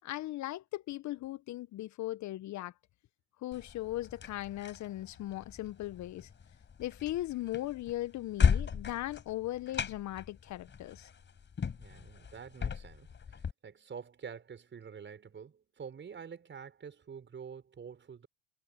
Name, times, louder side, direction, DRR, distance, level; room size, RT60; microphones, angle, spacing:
voice 1, 0.0-2.7 3.4-6.3 6.8-11.1, left 15 dB, 45° left, 1.6 m, -38 dB
sound 1, 3.5-13.5, left 6 dB, 30° left, 5.5 m, -36 dB
voice 2, 11.8-13.4 13.6-18.3, right 6 dB, 30° right, 6.1 m, -47 dB
hypercardioid pair, 75°, 38 cm